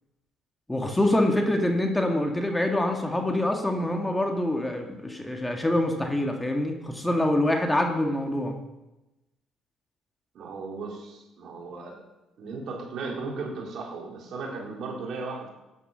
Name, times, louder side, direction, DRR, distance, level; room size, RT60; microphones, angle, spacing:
voice 1, 0.7-8.6, left 1 dB, 10° left, 3 dB, 2.0 m, -25 dB
voice 2, 10.3-12.0 12.4-15.5, right 3 dB, 60° right, -1 dB, 3.7 m, -36 dB
13.5 x 10.0 x 5.6 m, 0.99 s
supercardioid pair, 70°, 0 cm